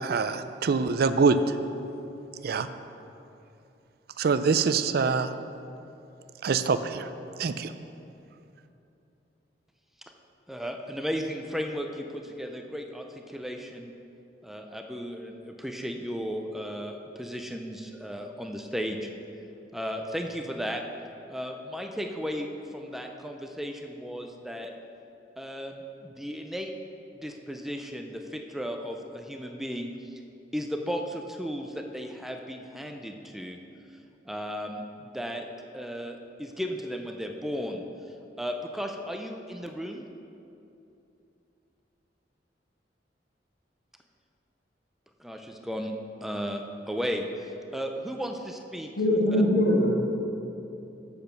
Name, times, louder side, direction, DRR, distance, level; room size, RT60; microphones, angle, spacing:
voice 1, 0.0-1.4 2.4-2.7 4.2-5.3 6.4-7.1 7.4-7.7, right 5 dB, 60° right, 11 dB, 0.4 m, -24 dB
voice 2, 10.5-13.9 14.4-19.1 19.7-20.8 21.3-24.7 25.4-26.7 27.2-29.9 30.5-33.6 34.3-35.5 35.7-37.8 38.4-40.0 45.2-45.9 46.2-49.2, equal, ahead, 3 dB, 0.5 m, -35 dB
voice 3, 49.0-49.9, left 1 dB, 70° left, -1 dB, 1.6 m, -22 dB
7.9 x 6.8 x 6.6 m, 2.8 s
head